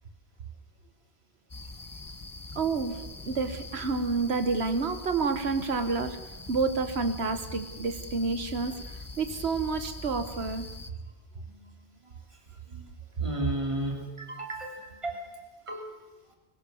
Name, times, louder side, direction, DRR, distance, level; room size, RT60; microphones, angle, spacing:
sound 1, 1.5-10.9, left 3 dB, 20° left, 0.9 m, -42 dB
voice 1, 2.6-6.2 6.5-8.8 9.2-10.7, right 4 dB, 90° right, 9 dB, 1.4 m, -29 dB
voice 2, 13.2-15.9, right 1 dB, 30° right, 2 dB, 3.1 m, -34 dB
22.0 x 19.0 x 7.0 m, 1.2 s
omnidirectional pair, 1.1 m